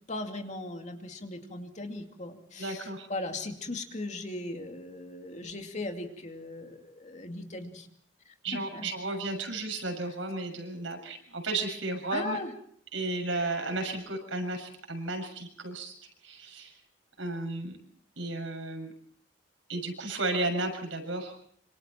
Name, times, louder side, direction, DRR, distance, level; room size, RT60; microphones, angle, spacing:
voice 1, 0.1-7.9 8.3-8.8 12.1-12.5, left 2 dB, 40° left, 4 dB, 2.5 m, -38 dB
voice 2, 2.6-3.1 8.4-12.4 12.9-15.9 16.2-16.8 17.2-17.8 18.2-18.9 19.7-21.3, right 2 dB, 85° right, 3 dB, 6.8 m, -33 dB
26.5 x 26.0 x 4.4 m, 0.62 s
head